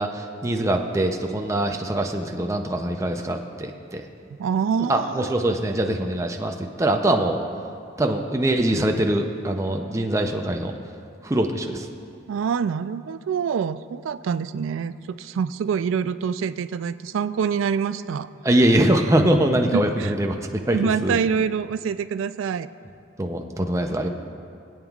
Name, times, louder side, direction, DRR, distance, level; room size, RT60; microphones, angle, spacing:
voice 1, 0.0-4.0 4.9-7.4 8.0-10.7 11.2-11.9 18.4-21.1 23.2-24.1, right 1 dB, 15° right, 3 dB, 0.5 m, -23 dB
voice 2, 4.4-5.3 12.3-18.3 19.7-20.1 20.7-22.7, right 7 dB, 80° right, 14 dB, 0.3 m, -26 dB
23.5 x 8.9 x 2.4 m, 2.4 s
head